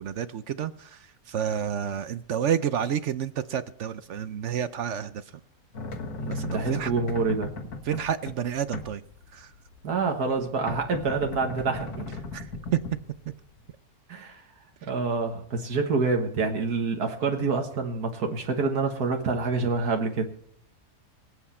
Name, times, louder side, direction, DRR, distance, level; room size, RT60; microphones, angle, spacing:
voice 1, 0.0-5.3 6.3-6.9 7.8-9.0 9.3-9.5 12.3-12.8, right 9 dB, 60° right, 13 dB, 0.9 m, -30 dB
sound 1, 5.7-13.7, left 3 dB, 85° left, 2.0 m, -38 dB
voice 2, 6.2-7.5 9.8-12.2 14.1-14.5 14.8-20.3, right 4 dB, 90° right, 3 dB, 1.9 m, -27 dB
24.5 x 8.2 x 4.3 m, 0.72 s
omnidirectional pair, 1.6 m